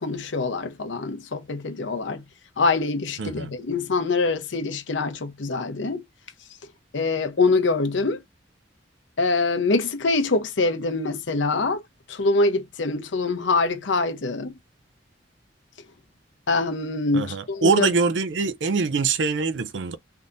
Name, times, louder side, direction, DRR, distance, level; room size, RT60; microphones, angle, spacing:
voice 1, 0.0-2.2 2.6-6.0 6.9-8.2 9.2-11.8 12.1-14.5 16.5-17.9, left 3 dB, 85° left, 0.7 m, -24 dB
voice 2, 3.2-3.5 17.1-20.0, right 4 dB, 75° right, 0.5 m, -23 dB
3.5 x 2.8 x 2.5 m
head